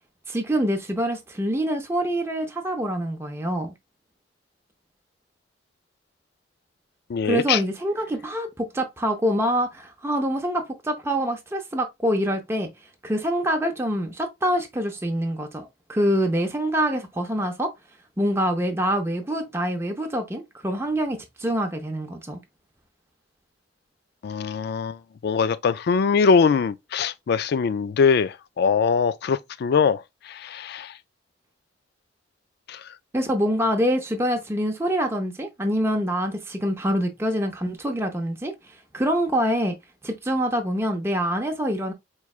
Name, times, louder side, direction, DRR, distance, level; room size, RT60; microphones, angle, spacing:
voice 1, 0.3-3.7 7.2-12.7 13.0-17.7 18.2-22.4 33.1-39.7 40.0-41.9, equal, 15° right, 0.6 m, -25 dB
voice 2, 7.1-7.6 24.2-25.0 25.2-30.0 30.4-30.9 32.7-32.8, left 5 dB, 60° left, 0.3 m, -22 dB
4.6 x 3.1 x 2.3 m
head